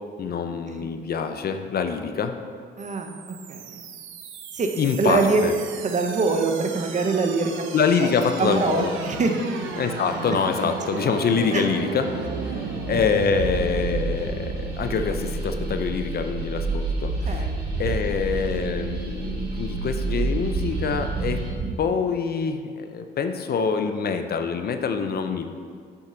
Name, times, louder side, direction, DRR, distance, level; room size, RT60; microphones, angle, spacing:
voice 1, 0.2-2.3 4.8-5.5 7.7-8.9 9.8-17.5 17.8-21.4 21.8-25.5, left 5 dB, 50° left, 7 dB, 0.6 m, -25 dB
voice 2, 2.8-3.8 4.5-4.7 5.0-5.4 5.8-7.6 8.0-8.1 8.4-9.4 11.5-11.7 17.3-17.5, right 4 dB, 35° right, 5 dB, 0.8 m, -24 dB
sound 1, 2.8-21.8, right 3 dB, 80° right, 0.7 m, -31 dB
sound 2, 8.7-21.5, right 3 dB, 55° right, 1.9 m, -37 dB
7.3 x 6.6 x 3.9 m, 2.1 s
cardioid pair, 90°, 20 cm